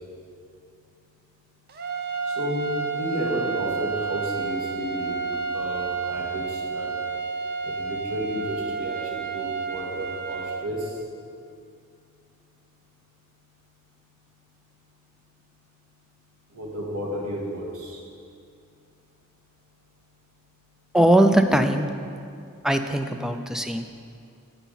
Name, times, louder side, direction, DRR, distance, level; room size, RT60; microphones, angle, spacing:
sound 1, 1.7-10.6, right 5 dB, 45° right, 0.6 m, -30 dB
voice 1, 2.4-5.2 5.5-6.4 6.7-6.9 7.8-10.8 16.5-17.6, equal, 85° right, -3 dB, 1.9 m, -31 dB
voice 2, 20.9-21.8 22.6-23.9, right 1 dB, ahead, 7 dB, 0.3 m, -20 dB
10.0 x 8.1 x 4.0 m, 2.4 s
head